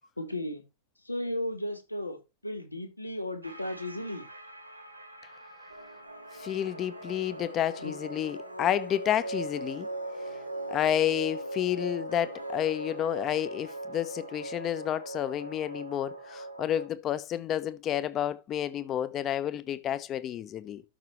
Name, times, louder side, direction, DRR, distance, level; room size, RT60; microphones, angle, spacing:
voice 1, 0.2-0.6 1.0-2.2 2.4-4.3 7.8-7.9, left 1 dB, 85° left, 1.4 m, -35 dB
sound 1, 3.4-16.9, right 2 dB, 85° right, 2.2 m, -40 dB
voice 2, 6.4-9.9 10.7-20.8, left 11 dB, 30° left, 0.8 m, -30 dB
12.5 x 5.8 x 3.0 m
figure-of-eight pair, 90°, 0 cm